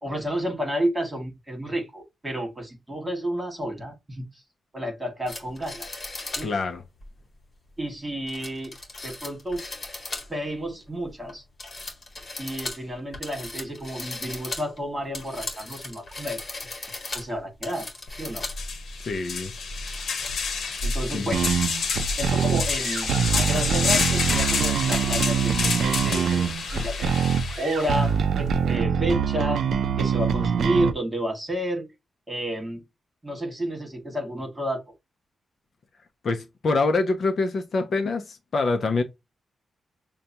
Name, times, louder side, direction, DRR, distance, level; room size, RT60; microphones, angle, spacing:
voice 1, 0.0-4.2 4.7-5.9 6.4-6.5 7.8-8.7 9.0-9.6 10.3-11.4 12.4-16.4 16.8-17.9 18.2-18.5 20.8-21.4 22.2-27.2 27.6-29.6 30.0-31.9 32.3-32.8 33.2-34.8, equal, 10° right, 1.9 m, -30 dB
sound 1, 5.3-6.5 7.0-7.1 8.3-10.5 10.9-11.3 11.6-18.6 19.0-19.1 19.6-20.8, left 2 dB, 35° left, 1.6 m, -37 dB
voice 2, 6.4-6.8 19.0-19.5 21.1-21.3 36.2-39.0, left 3 dB, 50° left, 0.6 m, -25 dB
sound 2, 18.1-18.2 18.5-28.1, left 5 dB, 70° left, 1.0 m, -28 dB
sound 3, 21.3-30.9, right 7 dB, 75° right, 0.5 m, -24 dB
6.5 x 2.3 x 2.8 m
wide cardioid pair, 150°, 0 cm